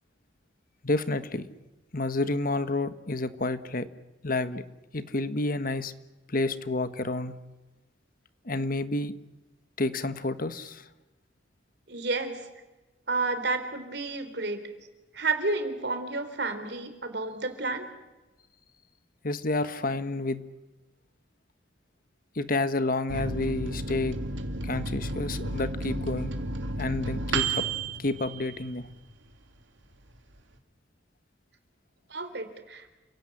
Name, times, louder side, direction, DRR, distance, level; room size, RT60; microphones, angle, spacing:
voice 1, 0.8-1.5 1.9-3.9 4.2-4.6 4.9-5.9 6.3-7.4 8.4-9.2 9.8-10.8 19.2-20.4 22.3-24.2 24.6-26.4 26.8-27.7 28.0-28.9, left 2 dB, 50° left, 12 dB, 1.4 m, -29 dB
voice 2, 11.9-12.5 13.1-14.6 15.1-17.9 32.1-32.9, right 3 dB, 60° right, 8 dB, 3.8 m, -31 dB
Microwave oven, 23.1-29.2 29.6-29.7 29.9-30.6, right 3 dB, 80° right, 2.9 m, -32 dB
29.5 x 17.0 x 9.9 m, 1.1 s
head